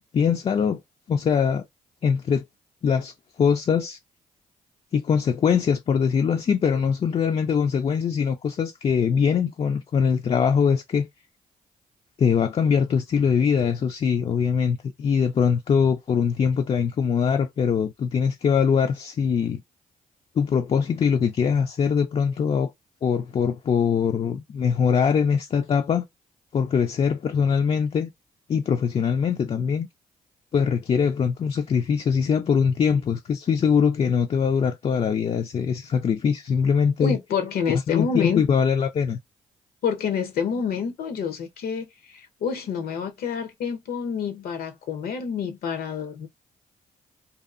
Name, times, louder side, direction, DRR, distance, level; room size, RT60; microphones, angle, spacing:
voice 1, 0.1-0.8 1.1-1.6 2.0-2.4 2.8-3.1 3.4-4.0 4.9-11.1 12.2-19.6 20.4-22.7 23.0-26.1 26.5-28.1 28.5-29.9 30.5-37.2 37.9-39.2, left 6 dB, 40° left, 0.3 m, -22 dB
voice 2, 37.0-38.5 39.8-46.3, left 6 dB, 80° left, 0.7 m, -28 dB
2.6 x 2.3 x 2.4 m
cardioid pair, 70°, 15 cm